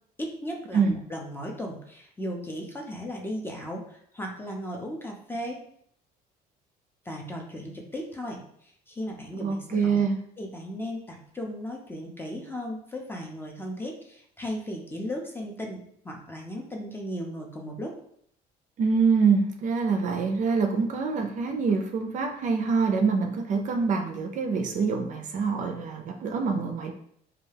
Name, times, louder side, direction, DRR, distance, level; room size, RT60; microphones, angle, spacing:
voice 1, 0.2-5.6 7.1-10.0 10.4-18.0, equal, 15° left, 0 dB, 0.5 m, -36 dB
voice 2, 9.4-10.2 18.8-26.9, right 5 dB, 50° right, 4 dB, 0.4 m, -25 dB
2.3 x 2.2 x 3.2 m, 0.67 s
cardioid pair, 110°, 17 cm